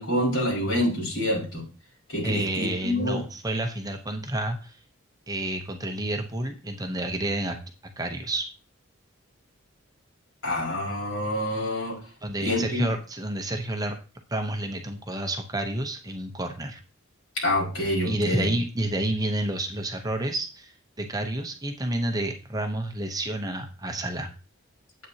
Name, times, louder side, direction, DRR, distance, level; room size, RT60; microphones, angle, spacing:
voice 1, 0.0-1.6 2.1-3.2 10.4-12.0 12.4-12.8 17.4-18.5, left 1 dB, 65° left, -4 dB, 5.1 m, -27 dB
voice 2, 2.2-4.8 5.3-7.6 8.0-8.5 12.2-14.0 14.3-16.8 18.0-24.3, right 1 dB, 15° right, 4 dB, 0.8 m, -29 dB
9.3 x 8.3 x 2.8 m, 0.34 s
head